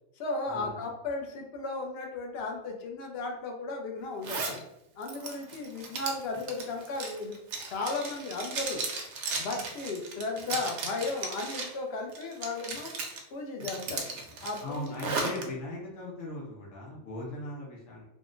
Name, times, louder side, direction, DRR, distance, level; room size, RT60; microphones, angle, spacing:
voice 1, 0.2-4.6 5.0-7.4 7.7-8.8 9.4-12.9 13.3-14.1 14.4-15.0, left 3 dB, 65° left, 1 dB, 0.7 m, -35 dB
Zipper (clothing), 4.2-4.6 5.0-11.8 12.1-13.2 13.6-15.4, right 4 dB, 70° right, 0.8 m, -36 dB
voice 2, 14.6-18.1, left 1 dB, 85° left, -4 dB, 1.1 m, -38 dB
3.5 x 2.1 x 2.4 m, 0.83 s
omnidirectional pair, 1.4 m